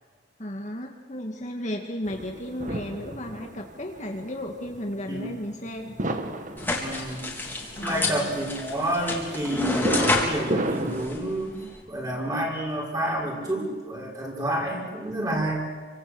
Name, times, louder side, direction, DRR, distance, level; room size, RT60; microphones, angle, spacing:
voice 1, 0.4-6.0 7.8-8.3, left 1 dB, 35° left, 2 dB, 2.2 m, -34 dB
sound 1, 2.0-11.1, right 1 dB, 40° right, 1.8 m, -33 dB
sound 2, 6.6-11.8, left 2 dB, 10° left, 4.1 m, -29 dB
voice 2, 6.7-7.2 7.8-11.6 11.9-15.7, right 1 dB, 20° right, -1 dB, 6.1 m, -29 dB
29.0 x 25.5 x 8.0 m, 1.5 s
head